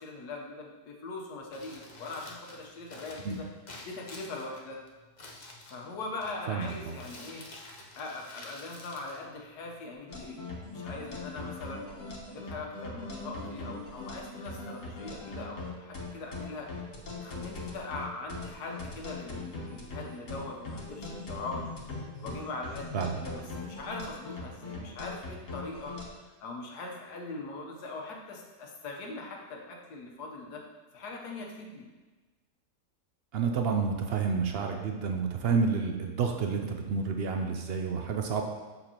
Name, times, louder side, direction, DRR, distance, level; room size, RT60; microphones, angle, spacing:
voice 1, 0.0-3.5 3.8-4.8 5.7-7.4 8.0-11.8 12.3-16.7 17.2-21.7 22.2-25.9 26.4-30.6 30.9-31.9, left 3 dB, 85° left, 0 dB, 1.5 m, -41 dB
Crumpling crinkling, 1.4-9.9, left 2 dB, 35° left, 0.8 m, -50 dB
voice 2, 6.5-6.9 22.9-23.1 33.3-38.4, right 5 dB, 70° right, 3 dB, 0.5 m, -29 dB
sound 1, 10.1-26.0, left 3 dB, 55° left, 1.5 m, -40 dB
7.1 x 6.5 x 2.9 m, 1.3 s
omnidirectional pair, 1.7 m